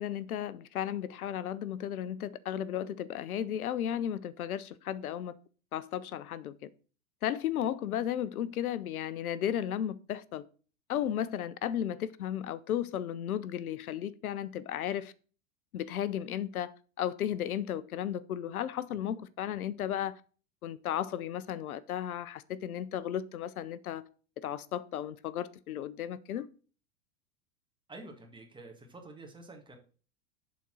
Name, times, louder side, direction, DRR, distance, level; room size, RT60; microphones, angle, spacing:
voice 1, 0.0-5.4 5.7-6.7 7.2-10.4 10.9-15.1 15.7-16.7 17.0-20.2 20.6-24.0 24.4-26.5, left 10 dB, 90° left, 0.6 m, -34 dB
voice 2, 27.9-29.8, right 2 dB, 10° right, 1.6 m, -48 dB
7.1 x 4.1 x 6.2 m
hypercardioid pair, 110°, 42 cm